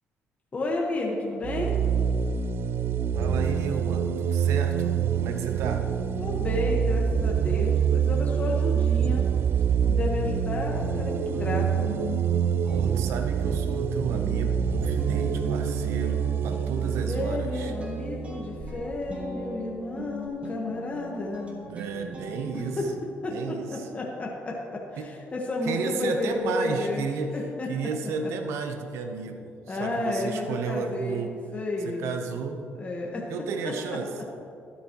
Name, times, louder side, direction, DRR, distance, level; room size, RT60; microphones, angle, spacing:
voice 1, 0.5-1.7 6.2-9.3 9.8-11.9 16.7-21.7 22.5-22.9 23.2-27.1 27.3-27.7 29.7-32.1 32.8-33.3 33.6-33.7, left 2 dB, 30° left, -2 dB, 1.3 m, -31 dB
sound 1, 1.4-18.8, right 8 dB, 55° right, 0.3 m, -26 dB
voice 2, 3.1-5.9 12.7-17.7 21.7-22.8 23.3-23.7 25.0-25.1 25.6-27.4 27.7-31.3 31.8-32.6 33.3-34.1, right 5 dB, 80° right, 6 dB, 0.8 m, -33 dB
sound 2, 11.3-22.8, equal, 30° right, 1.5 m, -39 dB
12.5 x 9.5 x 3.0 m, 2.5 s
cardioid pair, 85°, 5 cm